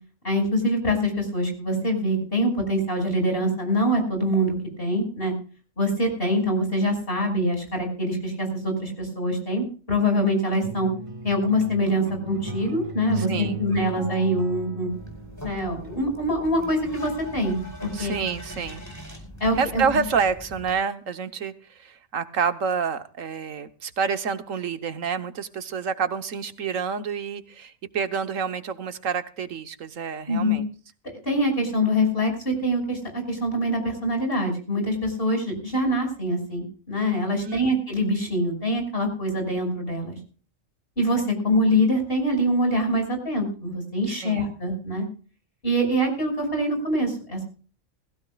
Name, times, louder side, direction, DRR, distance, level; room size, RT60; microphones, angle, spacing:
voice 1, 0.2-5.3 5.8-10.9 11.2-14.9 15.4-18.1 19.4-20.0 30.3-30.6 31.2-40.2 41.0-45.1 45.6-47.4, equal, 45° left, 3 dB, 6.2 m, -24 dB
sound 1, 10.5-15.9, equal, 25° right, 1.7 m, -35 dB
voice 2, 13.2-13.6 17.9-18.8 19.6-30.6 37.3-37.7 44.1-44.5, right 6 dB, 80° right, 11 dB, 1.5 m, -28 dB
sound 2, 14.9-20.7, equal, 10° left, 4.9 m, -41 dB
21.5 x 16.0 x 2.4 m, 0.39 s
omnidirectional pair, 1.3 m